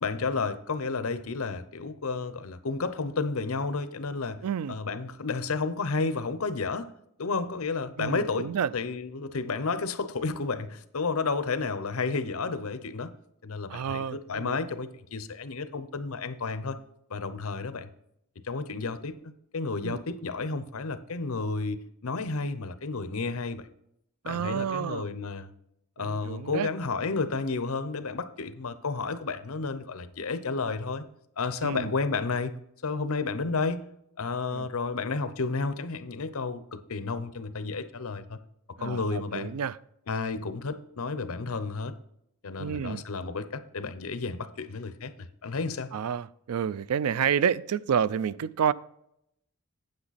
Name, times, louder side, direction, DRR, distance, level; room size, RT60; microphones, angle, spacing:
voice 1, 0.0-4.4 4.7-6.9 7.2-13.1 13.4-16.8 17.1-17.9 18.4-19.1 19.5-23.7 24.2-25.5 26.0-31.0 31.4-32.5 32.8-33.8 34.2-38.4 38.8-39.5 40.1-42.0 42.4-45.9, left 4 dB, 75° left, 0.7 m, -31 dB
voice 2, 4.4-4.8 8.0-8.7 13.7-14.6 19.8-20.0 24.2-25.1 26.0-26.7 31.6-31.9 34.5-34.7 38.8-39.8 42.6-43.0 45.9-48.7, right 8 dB, 85° right, 0.4 m, -29 dB
8.8 x 8.1 x 4.1 m
head